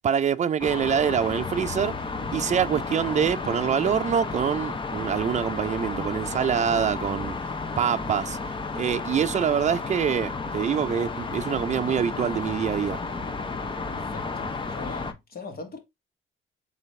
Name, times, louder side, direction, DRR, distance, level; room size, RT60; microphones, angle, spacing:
voice 1, 0.0-2.0 2.3-7.4 7.8-8.4 8.8-13.0, right 8 dB, 35° right, 0.4 m, -25 dB
sound 1, 0.6-15.1, left 4 dB, 25° left, 0.7 m, -32 dB
voice 2, 13.9-15.8, left 4 dB, 50° left, 1.4 m, -41 dB
4.0 x 3.4 x 3.1 m
cardioid pair, 90°, 20 cm